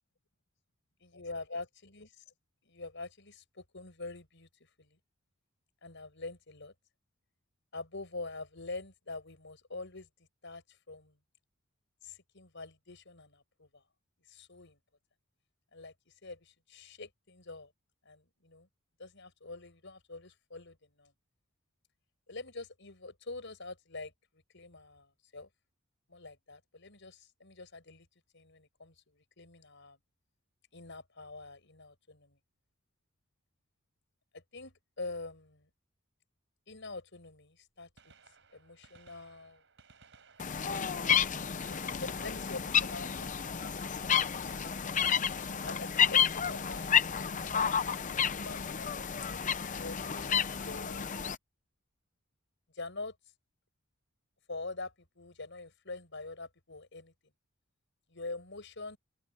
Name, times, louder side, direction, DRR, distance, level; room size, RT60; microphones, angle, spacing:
voice 1, 1.0-2.2 2.6-4.5 4.8-5.0 5.8-6.7 7.7-10.1 10.4-11.2 12.0-13.8 14.3-14.8 15.7-15.9 16.2-17.7 18.0-18.7 19.0-21.1 22.3-25.5 26.1-28.1 28.3-30.0 30.7-32.4 34.3-35.7 36.7-38.1 38.5-39.6 40.8-41.1 41.6-43.5 45.6-49.0 49.3-51.1 52.7-53.2 54.5-57.1 58.1-59.0, left 3 dB, 60° left, 6.4 m, -45 dB
Gunshot gunfire, 37.9-43.7 45.6-45.8 46.8-46.9 48.5-48.6 50.0-50.1 50.2-50.3, right 4 dB, 60° right, 6.1 m, -63 dB
coot.waterfowl.marsh, 40.4-51.3, left 7 dB, 35° left, 0.7 m, -31 dB
open air
head